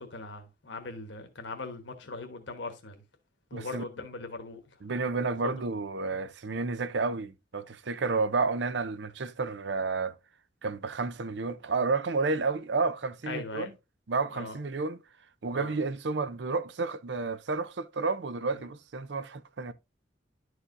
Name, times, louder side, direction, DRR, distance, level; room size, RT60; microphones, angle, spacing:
voice 1, 0.0-3.0 3.5-4.6 13.3-13.7 14.3-14.6 15.5-15.7 18.6-18.7, left 3 dB, 75° left, 1.2 m, -40 dB
voice 2, 3.5-3.8 4.8-10.1 10.6-13.7 14.1-15.0 15.4-19.7, right 4 dB, 70° right, 0.6 m, -31 dB
11.0 x 4.8 x 2.6 m
head